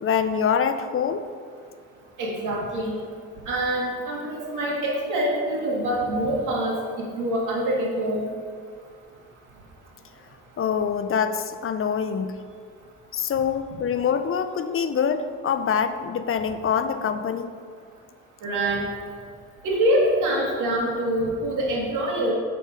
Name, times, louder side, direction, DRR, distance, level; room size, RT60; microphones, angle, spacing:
voice 1, 0.0-1.3 10.6-12.4 13.1-17.5, left 7 dB, 45° left, 10 dB, 0.6 m, -25 dB
voice 2, 2.2-3.0 3.5-8.3 18.4-18.8 19.6-22.3, right 1 dB, 90° right, -3 dB, 2.3 m, -25 dB
7.6 x 6.7 x 5.0 m, 2.1 s
cardioid pair, 90°, 30 cm